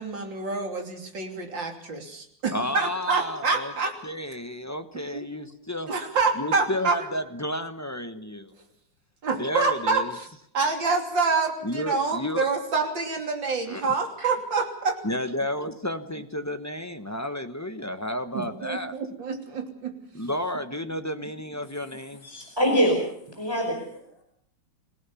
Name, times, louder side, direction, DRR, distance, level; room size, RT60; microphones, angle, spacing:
voice 1, 0.0-4.0 5.1-5.3 5.8-7.0 9.2-10.3 10.5-15.0 18.3-20.0, right 4 dB, 60° right, 4 dB, 3.7 m, -27 dB
voice 2, 2.5-3.7 4.0-5.9 6.4-8.5 9.4-10.1 11.6-12.5 13.7-13.9 15.0-18.9 20.1-22.2, left 1 dB, 20° left, 8 dB, 0.4 m, -32 dB
voice 3, 22.2-23.0 23.4-24.3, equal, 10° right, 1 dB, 5.1 m, -25 dB
26.0 x 17.5 x 7.1 m, 0.68 s
omnidirectional pair, 2.3 m